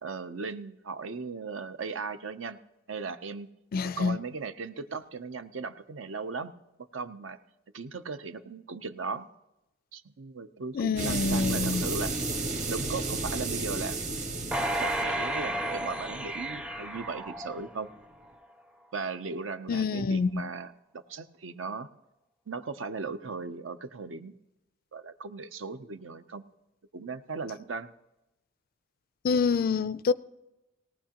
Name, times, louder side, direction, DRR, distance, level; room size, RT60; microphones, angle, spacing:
voice 1, 0.0-2.6 2.9-3.5 3.8-6.5 6.9-7.4 7.7-9.3 9.9-12.2 12.7-14.0 14.8-17.9 18.9-21.9 22.5-24.3 24.9-26.4 26.9-27.9, right 4 dB, 65° right, 0.6 m, -37 dB
voice 2, 3.7-4.2 10.7-11.8 19.7-20.5 29.2-30.1, left 4 dB, 45° left, 0.4 m, -27 dB
sound 1, 11.0-17.4, right 2 dB, 40° right, 1.4 m, -33 dB
sound 2, 14.5-18.0 18.4-18.5, right 1 dB, 5° right, 0.5 m, -32 dB
18.5 x 17.0 x 2.9 m
head